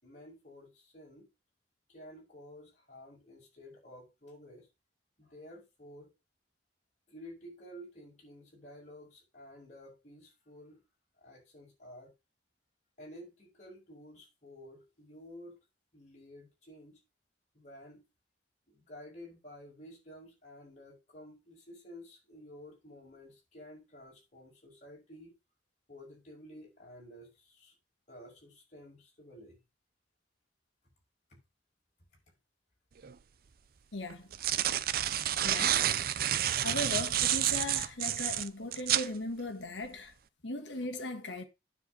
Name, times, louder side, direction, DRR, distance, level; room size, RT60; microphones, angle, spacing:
voice 1, 0.0-1.3 1.9-4.7 5.2-6.1 7.1-10.8 11.2-12.1 13.0-15.6 15.9-17.0 17.5-18.0 18.7-25.3 25.9-27.7 28.1-29.6 31.3-31.4, equal, 40° left, 5.6 m, -52 dB
sound 1, 33.0-33.1 34.1-39.1, right 11 dB, 55° right, 0.5 m, -29 dB
voice 2, 33.9-34.3 35.1-35.9 36.6-40.1 40.4-41.5, left 2 dB, 90° left, 1.5 m, -38 dB
9.6 x 6.9 x 4.0 m
head